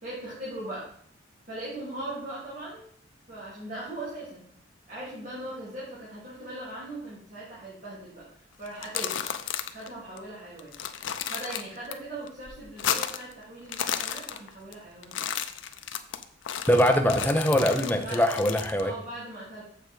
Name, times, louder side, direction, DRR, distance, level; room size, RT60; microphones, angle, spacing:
voice 1, 0.0-0.9 1.5-2.8 3.3-4.4 4.9-8.2 8.6-9.2 9.7-10.7 11.2-15.2 18.0-18.2 18.8-19.6, right 1 dB, 45° right, -9 dB, 3.2 m, -39 dB
sound 1, 8.7-9.9 10.2-10.3 10.6-11.9 12.3-13.3 13.6-14.7 15.0-18.8, left 9 dB, 90° left, 0.6 m, -33 dB
voice 2, 16.7-18.9, equal, 10° left, 4 dB, 0.8 m, -22 dB
7.2 x 6.9 x 4.7 m, 0.62 s
head